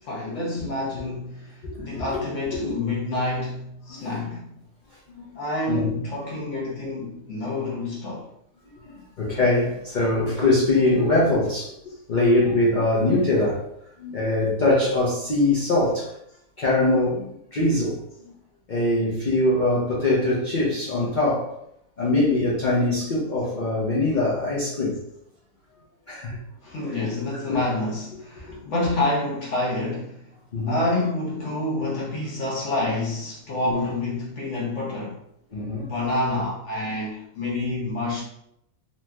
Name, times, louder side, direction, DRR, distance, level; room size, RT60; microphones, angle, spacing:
voice 1, 0.0-4.6 5.4-8.3 26.6-30.3 30.7-35.2 35.8-38.2, left 2 dB, 60° left, -4 dB, 0.9 m, -28 dB
voice 2, 1.6-2.2 2.5-2.8 3.9-4.2 5.2-5.3 5.7-6.0 8.8-11.7 12.1-13.6 14.0-16.1 16.6-18.0 18.7-21.5 22.0-25.0 26.1-26.4 27.5-27.6 28.5-28.6 30.5-30.8 33.6-33.9 35.5-35.9 36.9-37.0, left 2 dB, 80° left, -6 dB, 0.4 m, -22 dB
3.1 x 2.7 x 2.2 m, 0.76 s
omnidirectional pair, 1.7 m